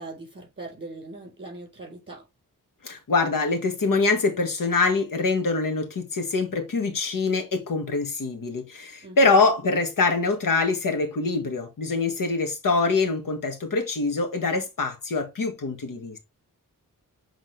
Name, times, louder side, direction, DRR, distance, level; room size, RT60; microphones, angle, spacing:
voice 1, 0.0-2.3 9.0-9.4, right 2 dB, 30° right, 4.5 m, -40 dB
voice 2, 2.8-16.2, left 3 dB, 70° left, 1.7 m, -24 dB
7.8 x 3.7 x 3.4 m
wide cardioid pair, 110°, 34 cm